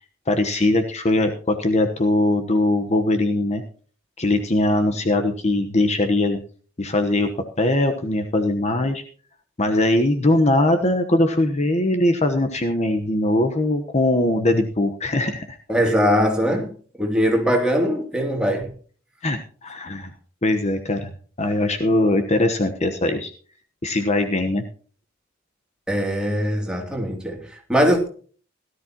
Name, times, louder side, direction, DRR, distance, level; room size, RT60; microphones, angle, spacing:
voice 1, 0.3-3.6 4.2-6.4 6.8-7.3 7.6-9.0 9.6-15.6 19.2-20.1 20.4-21.1 21.4-23.3 23.8-24.6, left 1 dB, 35° left, 1.1 m, -21 dB
voice 2, 15.7-18.7 25.9-28.1, equal, 5° right, 2.8 m, -21 dB
17.5 x 12.5 x 3.0 m
head